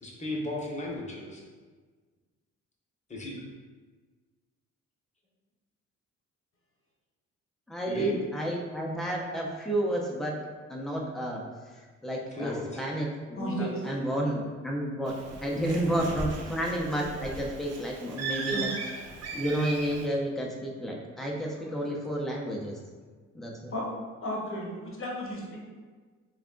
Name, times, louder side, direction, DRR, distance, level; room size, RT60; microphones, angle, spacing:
voice 1, 0.0-1.4 3.1-3.4 7.8-8.2 12.3-12.8 16.4-16.5, left 1 dB, 25° left, -3 dB, 1.0 m, -35 dB
voice 2, 7.7-10.3 10.7-11.4 11.7-15.1 15.4-18.7 19.3-22.7 23.3-23.5, right 1 dB, ahead, -2 dB, 0.6 m, -31 dB
voice 3, 13.4-13.8 18.5-18.6 23.7-23.8 24.2-25.6, equal, 45° left, -2 dB, 1.1 m, -34 dB
Bird, 15.1-20.1, right 3 dB, 55° right, 0.6 m, -37 dB
3.3 x 2.4 x 3.7 m, 1.4 s
cardioid pair, 90°, 30 cm